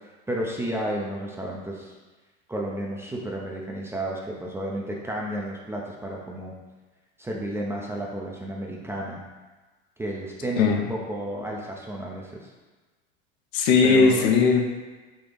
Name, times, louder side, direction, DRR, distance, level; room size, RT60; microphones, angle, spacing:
voice 1, 0.3-2.0 2.5-6.5 7.2-9.2 10.0-12.5 13.8-14.3, right 1 dB, 10° right, -2 dB, 0.4 m, -32 dB
voice 2, 13.5-14.6, left 5 dB, 60° left, 3 dB, 0.6 m, -18 dB
4.2 x 2.3 x 3.2 m, 1.2 s
hypercardioid pair, 95°, 30 cm